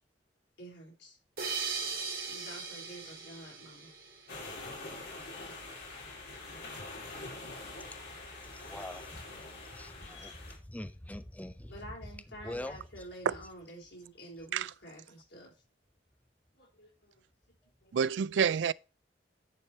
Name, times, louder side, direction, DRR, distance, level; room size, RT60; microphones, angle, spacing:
voice 1, 0.6-1.2 2.2-3.9 5.3-5.6 7.6-8.8 9.2-9.4 11.7-15.6 16.5-17.2 17.8-18.0, equal, 85° left, 4.5 m, -50 dB
sound 1, 1.4-4.7, right 5 dB, 55° right, 2.5 m, -39 dB
sound 2, 4.3-10.6, left 2 dB, 65° left, 4.0 m, -45 dB
voice 2, 8.5-9.1 9.7-11.7 12.4-12.8, left 1 dB, 10° left, 0.6 m, -43 dB
voice 3, 17.9-18.7, right 7 dB, 90° right, 0.3 m, -28 dB
10.5 x 4.6 x 4.4 m
head